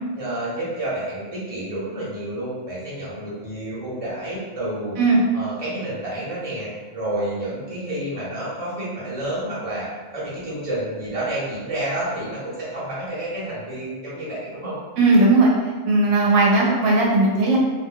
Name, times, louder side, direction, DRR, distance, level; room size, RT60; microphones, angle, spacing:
voice 1, 0.1-5.0 5.3-14.8, right 1 dB, 30° right, -8 dB, 0.9 m, -29 dB
voice 2, 15.0-15.5 15.9-17.6, right 2 dB, 85° right, -2 dB, 1.0 m, -17 dB
2.5 x 2.2 x 3.6 m, 1.3 s
omnidirectional pair, 1.4 m